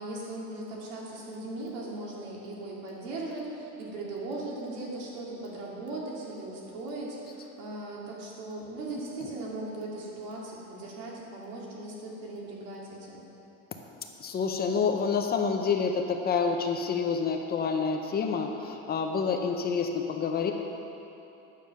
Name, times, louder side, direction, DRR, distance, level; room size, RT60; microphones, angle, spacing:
voice 1, 0.0-13.2, right 2 dB, 85° right, -3 dB, 2.4 m, -38 dB
voice 2, 14.2-20.5, left 5 dB, 30° left, 4 dB, 0.6 m, -28 dB
9.4 x 6.9 x 6.4 m, 3.0 s
cardioid pair, 155°, 35 cm